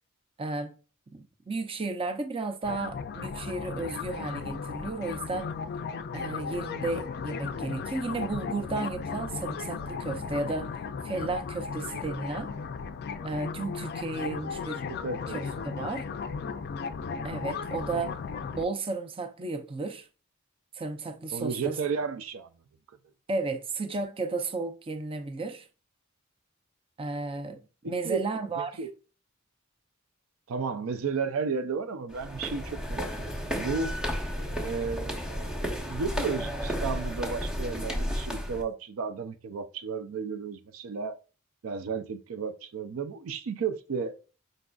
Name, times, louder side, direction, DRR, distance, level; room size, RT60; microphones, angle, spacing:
voice 1, 0.4-0.7 1.1-5.5 6.1-10.7 11.0-12.5 13.2-14.9 15.3-16.1 17.2-18.2 18.5-20.1 20.7-21.8 23.3-25.7 27.0-28.8, right 3 dB, 25° right, 0.5 m, -33 dB
sound 1, 2.6-18.6, left 5 dB, 50° left, 0.3 m, -36 dB
voice 2, 14.9-15.7 21.3-22.5 27.8-28.2 28.6-28.9 30.5-33.9 34.6-41.2 41.6-44.2, right 5 dB, 85° right, 0.4 m, -33 dB
sound 2, 32.1-38.6, equal, 5° right, 0.9 m, -33 dB
5.2 x 3.8 x 2.3 m
head